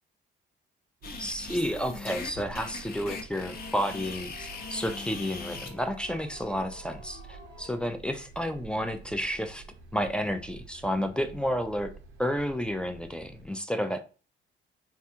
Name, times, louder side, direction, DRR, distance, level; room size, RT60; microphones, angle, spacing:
sound 1, 1.0-5.7, left 4 dB, 50° left, 0.6 m, -40 dB
sound 2, 1.0-13.5, right 5 dB, 85° right, 0.6 m, -49 dB
voice 1, 1.1-9.6 9.9-11.9 12.2-14.0, equal, 5° left, 6 dB, 0.3 m, -31 dB
sound 3, 3.5-7.9, left 2 dB, 65° left, 1.0 m, -50 dB
3.3 x 2.3 x 2.8 m, 0.36 s
cardioid pair, 90°, 20 cm